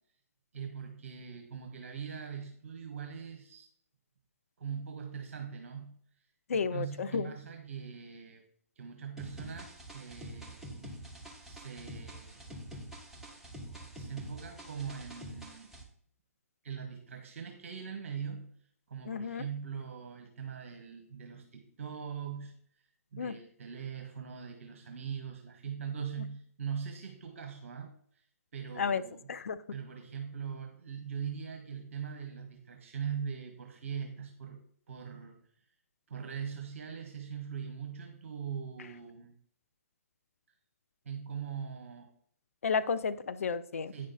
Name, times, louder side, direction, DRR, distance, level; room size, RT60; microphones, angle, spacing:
voice 1, 0.5-3.7 4.6-6.0 6.5-8.4 8.7-10.7 11.0-11.1 11.4-12.6 14.0-15.7 16.6-18.5 18.9-22.5 23.1-28.2 28.5-29.3 29.7-35.6 36.1-39.3 41.0-42.1 43.9-44.1, right 7 dB, 55° right, 3 dB, 1.5 m, -41 dB
voice 2, 6.5-7.3 19.1-19.4 23.2-23.4 28.8-29.0 29.3-29.6 42.6-43.9, left 5 dB, 65° left, 12 dB, 0.6 m, -32 dB
sound 1, 9.2-15.8, equal, 5° right, 1.7 m, -46 dB
9.7 x 6.4 x 4.2 m, 0.62 s
figure-of-eight pair, 125°, 8 cm